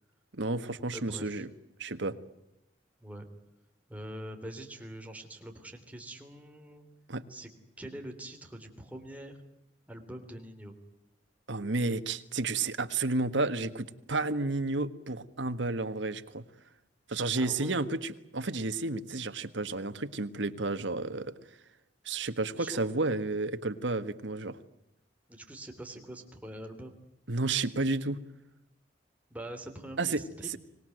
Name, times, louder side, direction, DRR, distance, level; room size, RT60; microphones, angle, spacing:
voice 1, 0.3-1.5 1.8-2.2 7.1-7.2 11.5-16.4 17.1-21.3 22.0-24.6 27.3-28.2 30.0-30.2, right 3 dB, 80° right, 10 dB, 1.6 m, -31 dB
voice 2, 0.9-1.4 3.0-3.3 3.9-6.9 7.3-7.5 7.8-9.3 9.9-10.8 17.3-17.8 22.1-22.9 25.3-27.0 29.3-30.5, right 1 dB, 10° right, 3 dB, 3.4 m, -44 dB
25.5 x 19.5 x 9.2 m, 0.87 s
head